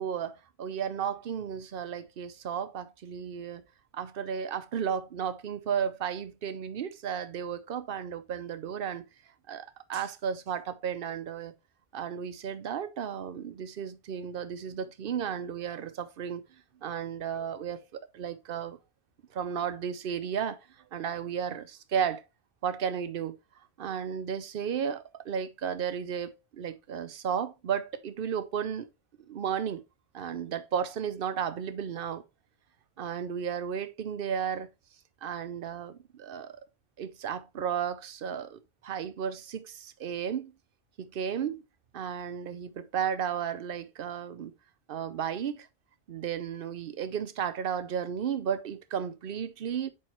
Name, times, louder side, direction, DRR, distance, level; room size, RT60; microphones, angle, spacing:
voice 1, 0.0-3.6 3.9-9.1 9.5-11.5 11.9-16.4 16.8-18.8 19.3-20.6 20.9-22.2 22.6-23.4 23.8-28.9 29.3-29.8 30.1-32.2 33.0-34.7 35.2-36.6 37.0-40.5 41.0-41.6 41.9-44.5 44.9-45.7 46.1-49.9, right 8 dB, 65° right, 0.8 m, -34 dB
7.7 x 4.6 x 3.0 m
omnidirectional pair, 1.1 m